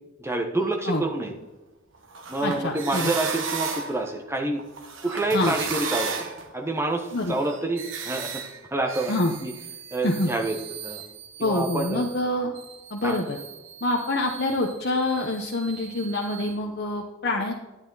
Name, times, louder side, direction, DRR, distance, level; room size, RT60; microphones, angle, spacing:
voice 1, 0.2-1.3 2.3-4.6 5.0-8.4 8.7-9.1 9.4-9.5 9.9-11.0 11.4-12.0 13.0-13.2, right 2 dB, 10° right, 2 dB, 1.1 m, -28 dB
sound 1, 2.0-4.2 4.6-12.2 12.6-16.5, right 6 dB, 60° right, 1.2 m, -36 dB
voice 2, 2.4-3.1 5.3-5.5 7.1-7.3 9.1-9.3 10.0-10.3 11.4-12.5 12.9-13.4 13.8-17.5, left 2 dB, 50° left, 0 dB, 0.9 m, -26 dB
9.8 x 9.8 x 4.0 m, 1.1 s
head